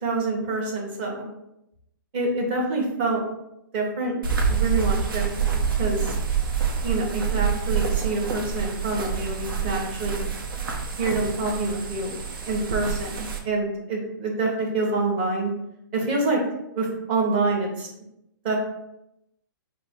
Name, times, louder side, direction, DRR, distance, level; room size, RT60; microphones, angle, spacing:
voice 1, 0.0-1.3 2.1-3.2 3.7-4.1 4.5-6.1 6.8-10.3 11.0-12.2 12.4-15.5 15.9-16.4 16.7-17.9 18.4-18.6, right 2 dB, 30° right, -1 dB, 1.0 m, -26 dB
sound 1, 4.2-13.4, right 7 dB, 85° right, 0.9 m, -27 dB
5.0 x 2.1 x 4.3 m, 0.84 s
hypercardioid pair, 165°, 12 cm